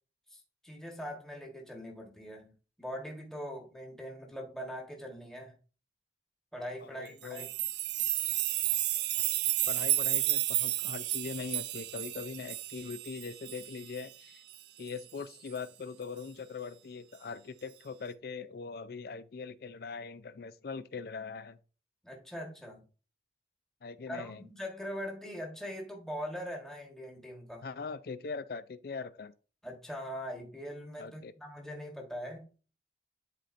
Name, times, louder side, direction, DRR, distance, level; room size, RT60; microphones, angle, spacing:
voice 1, 0.3-5.5 6.5-7.5 22.0-22.8 24.1-27.6 29.6-32.5, equal, 5° left, 1.4 m, -42 dB
voice 2, 6.8-7.5 9.7-14.4 14.8-21.6 23.8-24.4 27.6-29.3 31.0-31.3, left 4 dB, 55° left, 0.4 m, -41 dB
sound 1, 7.2-14.0 14.5-14.6 14.9-15.0 15.6-15.7, right 15 dB, 70° right, 0.4 m, -32 dB
11.0 x 4.3 x 2.6 m
head